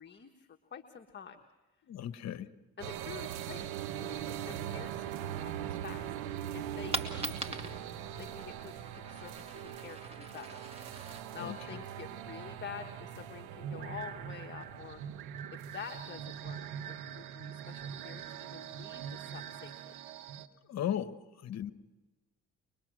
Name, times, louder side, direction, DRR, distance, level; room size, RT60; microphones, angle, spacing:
voice 1, 0.0-1.4 2.8-6.1 6.5-7.9 8.2-10.6 11.3-15.0 15.5-16.6 16.9-20.0, left 7 dB, 35° left, 4 dB, 1.5 m, -48 dB
voice 2, 1.9-2.5 11.4-11.5 20.7-21.7, left 10 dB, 60° left, 12 dB, 1.2 m, -36 dB
sound 1, 2.8-20.5, right 10 dB, 90° right, 1.1 m, -41 dB
Coin (dropping), 6.9-12.6, right 2 dB, 20° right, 2.3 m, -43 dB
24.0 x 22.0 x 6.2 m, 1.1 s
supercardioid pair, 75°, 30 cm